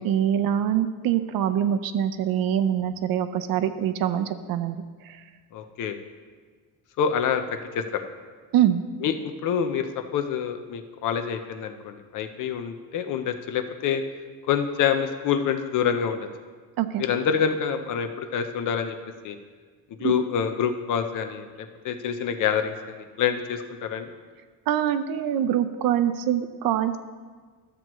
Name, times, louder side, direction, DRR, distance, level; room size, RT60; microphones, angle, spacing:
voice 1, 0.0-5.2 8.5-8.8 16.8-17.1 20.0-20.1 24.7-27.0, right 10 dB, 70° right, 11 dB, 0.6 m, -24 dB
voice 2, 5.5-6.0 7.0-7.4 7.7-8.0 9.0-9.1 9.4-14.0 14.5-16.3 17.0-19.0 19.2-19.4 20.0-21.5 21.8-24.1, left 7 dB, 55° left, 7 dB, 0.7 m, -26 dB
13.0 x 7.6 x 3.0 m, 1.5 s
cardioid pair, 160°, 37 cm